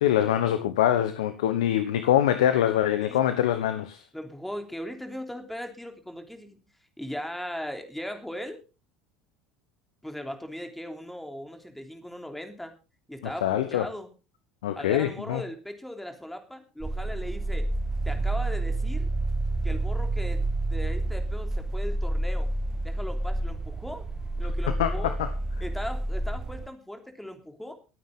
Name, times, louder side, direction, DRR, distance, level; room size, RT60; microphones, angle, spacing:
voice 1, 0.0-4.0 13.2-13.9 14.6-15.4 24.8-25.3, left 11 dB, 75° left, 1.1 m, -24 dB
voice 2, 4.1-6.6 7.0-8.6 10.0-12.7 13.1-14.1 14.7-17.7 18.0-19.1 19.6-22.5 22.8-24.1 24.4-25.1 25.6-27.7, equal, 5° left, 3.3 m, -38 dB
sound 1, 16.8-26.7, right 2 dB, 15° right, 0.9 m, -29 dB
23.5 x 9.3 x 3.7 m
hypercardioid pair, 70°, 3 cm